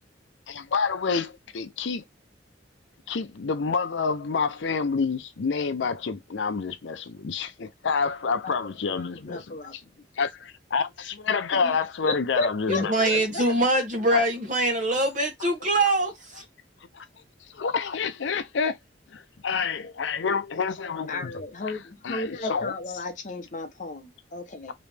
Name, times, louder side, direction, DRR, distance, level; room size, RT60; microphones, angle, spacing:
voice 1, 0.5-2.0 3.1-9.8 10.2-12.9 14.1-14.3 16.9-17.0 17.5-18.8 19.1-21.8 22.0-22.7, left 5 dB, 80° left, 0.5 m, -28 dB
voice 2, 8.9-9.7 11.5-11.7 12.1-13.9 21.1-24.7, left 2 dB, 40° left, 0.8 m, -34 dB
voice 3, 12.7-16.4, right 1 dB, 45° right, 1.2 m, -24 dB
3.1 x 3.0 x 3.3 m
head